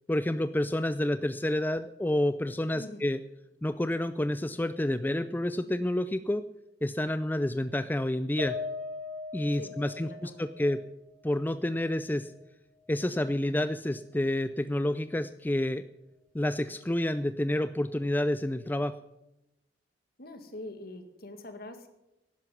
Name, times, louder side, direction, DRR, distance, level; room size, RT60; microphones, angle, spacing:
voice 1, 0.1-3.2 3.6-6.5 6.8-8.5 9.3-10.8 11.2-12.3 12.9-15.9 16.3-19.0, left 1 dB, 10° left, 12 dB, 0.4 m, -29 dB
Piano, 8.4-12.9 13.2-13.4 13.8-13.9, left 4 dB, 60° right, 3.8 m, -41 dB
voice 2, 9.5-10.5 20.2-21.9, left 1 dB, 55° left, 7 dB, 2.0 m, -44 dB
12.0 x 11.0 x 9.2 m, 0.92 s
head